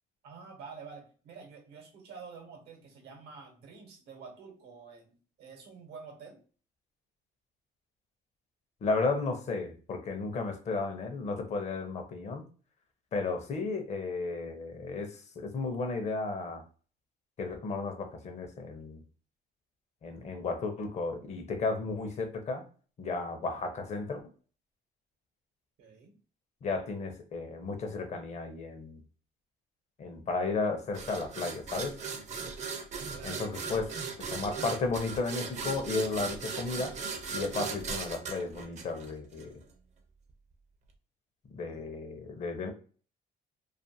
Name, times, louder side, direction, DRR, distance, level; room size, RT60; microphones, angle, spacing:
voice 1, 0.2-6.4 25.8-26.1 33.1-33.6 41.6-41.9, right 5 dB, 80° right, 4 dB, 0.9 m, -49 dB
voice 2, 8.8-12.4 13.1-16.6 17.4-19.0 20.0-22.6 23.0-24.2 26.6-29.0 30.0-31.9 33.2-33.9 34.3-37.0 37.3-39.5 41.5-42.7, left 3 dB, 40° left, 6 dB, 0.6 m, -34 dB
sound 1, 30.9-39.4, right 5 dB, 45° right, 0.5 m, -38 dB
2.5 x 2.4 x 2.6 m, 0.40 s
cardioid pair, 110°, 17 cm